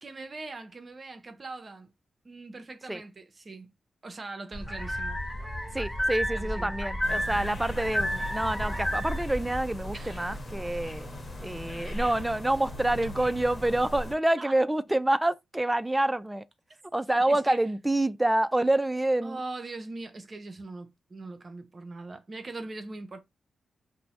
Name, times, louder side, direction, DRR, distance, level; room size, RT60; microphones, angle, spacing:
voice 1, 0.0-1.9 2.2-3.7 4.0-5.2 6.3-6.7 9.9-10.3 14.4-14.6 17.3-17.6 19.2-23.2, right 3 dB, 45° right, 0.7 m, -41 dB
sound 1, 4.5-9.6, equal, 25° left, 1.2 m, -31 dB
voice 2, 5.7-11.1 11.4-16.4 16.9-19.4, right 1 dB, 15° right, 0.3 m, -27 dB
sound 2, 7.0-14.2, left 1 dB, 50° left, 1.0 m, -39 dB
2.6 x 2.1 x 3.0 m
supercardioid pair, 45°, 0 cm